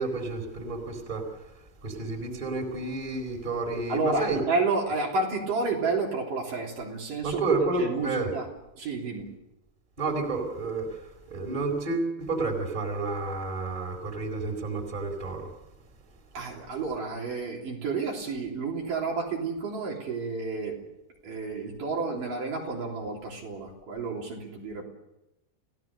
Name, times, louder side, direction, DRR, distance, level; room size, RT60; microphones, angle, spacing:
voice 1, 0.0-1.3 1.8-4.4 7.2-8.3 10.0-15.5, right 3 dB, 10° right, 2 dB, 4.0 m, -30 dB
voice 2, 3.9-7.4 7.8-8.5 8.7-9.3 16.3-20.8 21.2-24.8, right 3 dB, 55° right, -1 dB, 4.8 m, -30 dB
30.0 x 17.5 x 6.7 m, 0.94 s
omnidirectional pair, 4.7 m